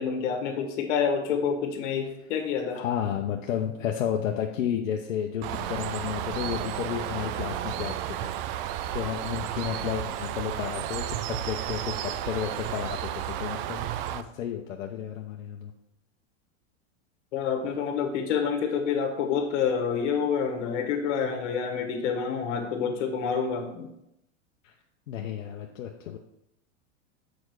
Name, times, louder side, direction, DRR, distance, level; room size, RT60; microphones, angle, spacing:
voice 1, 0.0-2.8 17.3-23.9, left 6 dB, 65° left, 4 dB, 1.6 m, -28 dB
voice 2, 2.7-8.7 8.9-15.7 24.6-24.7 25.1-26.2, left 9 dB, 85° left, 2 dB, 0.8 m, -32 dB
Bird, 5.4-14.2, right 11 dB, 50° right, 0.5 m, -32 dB
6.4 x 5.2 x 4.7 m, 0.82 s
hypercardioid pair, 115°, 38 cm